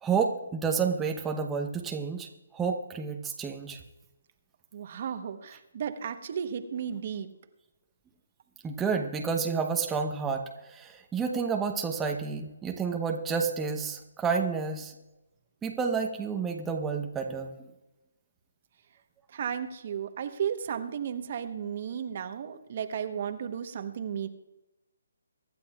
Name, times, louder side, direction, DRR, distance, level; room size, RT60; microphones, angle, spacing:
voice 1, 0.0-3.8 8.6-10.4 10.7-14.9 15.6-17.5, right 5 dB, 10° right, 2 dB, 0.9 m, -30 dB
voice 2, 4.7-7.3 19.3-24.3, right 8 dB, 45° right, 8 dB, 1.1 m, -34 dB
24.0 x 11.5 x 2.4 m, 1.0 s
figure-of-eight pair, 150°, 0 cm